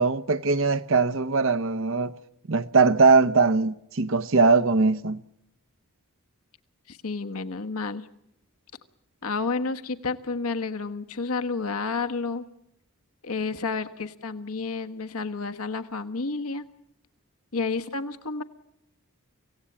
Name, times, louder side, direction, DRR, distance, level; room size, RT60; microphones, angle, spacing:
voice 1, 0.0-2.1 2.5-5.2, right 4 dB, 60° right, 0.8 m, -21 dB
voice 2, 6.9-8.1 9.2-12.5 13.2-16.6 17.5-18.4, left 4 dB, 80° left, 1.4 m, -30 dB
26.0 x 17.0 x 8.6 m
head